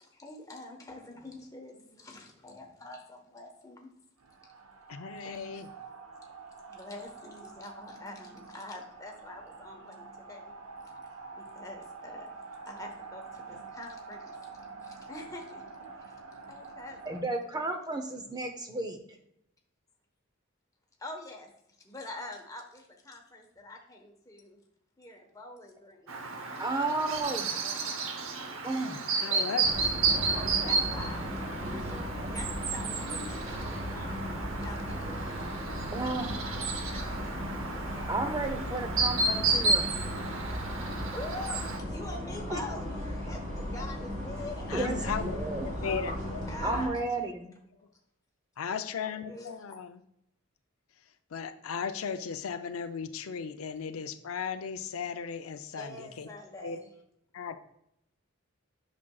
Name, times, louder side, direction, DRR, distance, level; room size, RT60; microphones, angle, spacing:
voice 1, 0.2-3.9 5.2-5.6 6.7-10.5 11.3-12.3 12.7-14.3 15.1-15.6 16.5-17.2 21.0-21.5 21.8-24.6 25.0-26.0 27.5-28.0 29.1-29.6 30.6-35.5 36.4-38.2 41.1-42.8 43.3-44.8 45.8-47.0 49.2-49.6 55.8-56.9, left 2 dB, 15° left, 1 dB, 1.1 m, -45 dB
sound 1, 4.2-17.2, right 4 dB, 85° right, 1.0 m, -47 dB
voice 2, 4.9-5.7 29.2-29.7 44.7-46.5 46.9-47.0 48.6-50.0 51.3-56.3 56.6-56.8 57.3-57.6, left 6 dB, 80° left, 9 dB, 0.5 m, -36 dB
voice 3, 17.0-19.0 26.6-27.5 28.6-29.0 35.9-36.3 38.1-40.0 42.5-42.6 44.7-45.7 46.6-47.5, right 2 dB, 20° right, 5 dB, 0.6 m, -33 dB
Chirp tweet, 26.1-41.8, right 3 dB, 65° right, 0.8 m, -32 dB
sound 2, 29.6-46.9, equal, 35° right, 2.5 m, -36 dB
8.5 x 6.1 x 2.3 m, 0.77 s
head